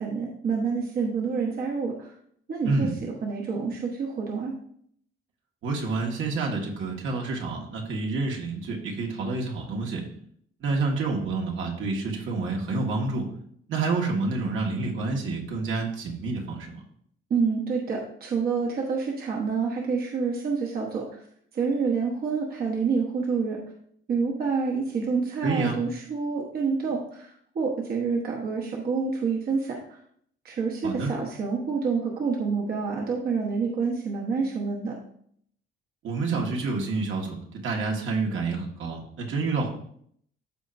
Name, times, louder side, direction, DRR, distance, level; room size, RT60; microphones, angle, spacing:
voice 1, 0.0-2.1 2.5-4.5 17.3-21.2 21.5-23.6 24.1-30.0 30.4-34.9, right 5 dB, 50° right, -1 dB, 1.2 m, -28 dB
voice 2, 5.6-10.0 10.6-13.3 13.7-16.8 25.4-25.8 30.8-31.1 36.0-39.7, right 3 dB, 70° right, 0 dB, 1.8 m, -28 dB
13.5 x 4.5 x 2.7 m, 0.64 s
cardioid pair, 155°, 21 cm